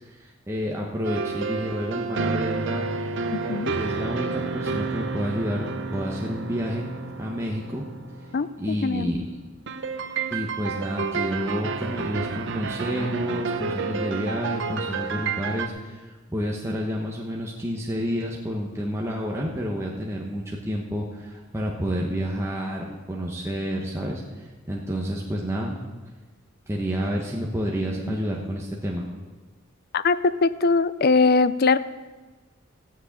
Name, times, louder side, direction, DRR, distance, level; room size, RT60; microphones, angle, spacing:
voice 1, 0.1-2.9 3.4-5.6 5.9-6.9 7.2-7.8 8.6-9.2 10.3-25.8 26.7-29.0, equal, 15° right, -2 dB, 1.2 m, -29 dB
sound 1, 1.0-8.8 9.7-15.7, right 4 dB, 60° right, 0.8 m, -30 dB
voice 2, 3.3-3.7 8.3-8.5 8.8-9.1 29.9-31.8, left 4 dB, 50° left, 14 dB, 0.5 m, -21 dB
14.0 x 6.3 x 8.6 m, 1.3 s
head